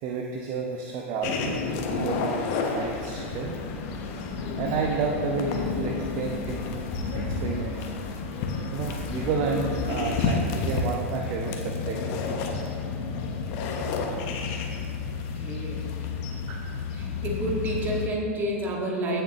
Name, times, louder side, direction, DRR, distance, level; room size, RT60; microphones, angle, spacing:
voice 1, 0.0-1.6 1.9-3.6 4.6-6.8 7.1-7.9 8.7-12.0 16.5-16.6, right 4 dB, 40° right, 1 dB, 0.8 m, -31 dB
sound 1, 1.2-18.1, left 4 dB, 45° left, 1.1 m, -30 dB
voice 2, 15.1-15.9 16.9-19.2, right 1 dB, 25° right, -1 dB, 1.8 m, -30 dB
15.5 x 6.7 x 3.0 m, 2.4 s
figure-of-eight pair, 90°, 7 cm